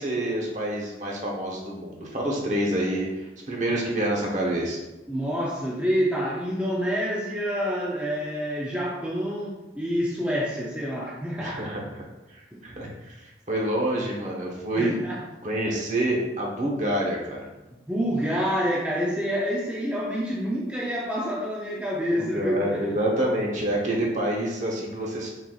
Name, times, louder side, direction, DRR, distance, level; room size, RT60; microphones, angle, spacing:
voice 1, 0.0-4.8 11.4-11.8 12.6-15.0 15.4-17.4 22.1-25.3, right 1 dB, 40° right, -2 dB, 0.9 m, -27 dB
voice 2, 5.1-11.7 12.5-12.6 14.7-15.2 17.9-23.0, equal, 5° right, -6 dB, 0.5 m, -27 dB
4.5 x 3.9 x 2.4 m, 1.0 s
head